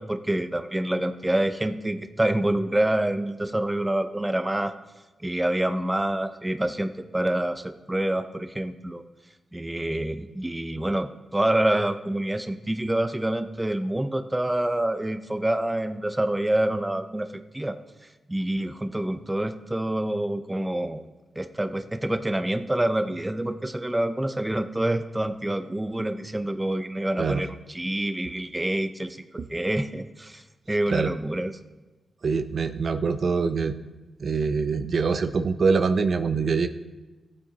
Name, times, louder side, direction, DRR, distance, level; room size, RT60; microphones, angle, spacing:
voice 1, 0.0-4.7 5.2-9.0 9.5-17.8 18.3-21.1 21.4-29.2 29.5-30.4 30.7-31.6, right 1 dB, 15° right, 9 dB, 0.6 m, -27 dB
voice 2, 32.2-33.7 34.2-36.7, right 5 dB, 60° right, 10 dB, 0.5 m, -24 dB
15.5 x 8.6 x 2.8 m, 1.2 s
cardioid pair, 70°, 0 cm